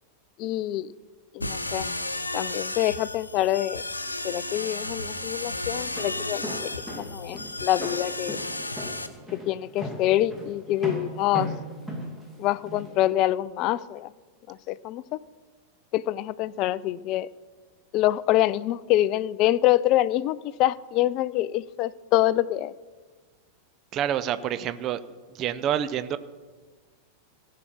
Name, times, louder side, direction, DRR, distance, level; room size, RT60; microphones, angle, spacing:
voice 1, 0.4-0.9 1.3-1.9 2.3-3.8 4.2-6.6 7.0-8.4 9.3-11.5 12.4-14.1 14.5-15.2 15.9-17.3 17.9-22.7, left 14 dB, 40° left, 19 dB, 0.3 m, -25 dB
sound 1, 1.4-9.1, left 2 dB, 85° left, 0.7 m, -33 dB
Walk footsteps, 6.0-12.9, equal, 10° right, 2.2 m, -37 dB
voice 2, 23.9-25.0 25.3-26.2, right 10 dB, 35° right, 14 dB, 0.5 m, -27 dB
16.5 x 5.7 x 7.2 m, 1.4 s
figure-of-eight pair, 90°, 0 cm